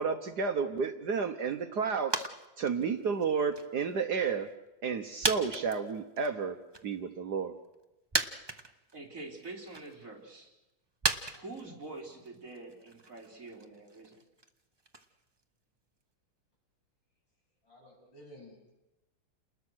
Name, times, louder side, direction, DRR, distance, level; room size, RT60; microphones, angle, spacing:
voice 1, 0.0-2.3 2.6-4.5 4.8-6.6 6.8-7.5, right 5 dB, 60° right, 8 dB, 1.5 m, -31 dB
sound 1, 2.1-2.5 2.7-3.9 4.4-4.5 5.2-6.3 6.7-6.8 7.7-7.8 8.1-9.0 9.4-10.0 11.0-15.1 15.4-15.5, right 3 dB, 20° right, 0.6 m, -35 dB
voice 2, 8.9-10.5 11.3-14.2, right 2 dB, 40° right, 0 dB, 3.9 m, -46 dB
voice 3, 17.6-18.7, left 1 dB, 65° left, -2 dB, 9.0 m, -53 dB
29.5 x 20.5 x 6.3 m, 0.97 s
omnidirectional pair, 2.2 m